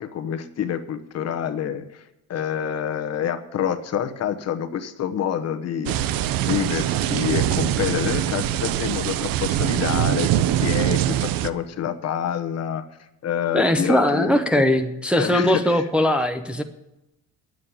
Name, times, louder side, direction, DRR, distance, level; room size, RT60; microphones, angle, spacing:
voice 1, 0.0-2.0 2.3-6.1 6.4-12.8 13.2-14.6 15.2-15.8, left 9 dB, 45° left, 8 dB, 1.1 m, -27 dB
sound 1, 5.9-11.5, right 12 dB, 80° right, 0.7 m, -23 dB
voice 2, 13.5-16.6, left 1 dB, 5° right, 4 dB, 0.6 m, -20 dB
10.5 x 7.6 x 9.7 m, 0.91 s
cardioid pair, 155°, 34 cm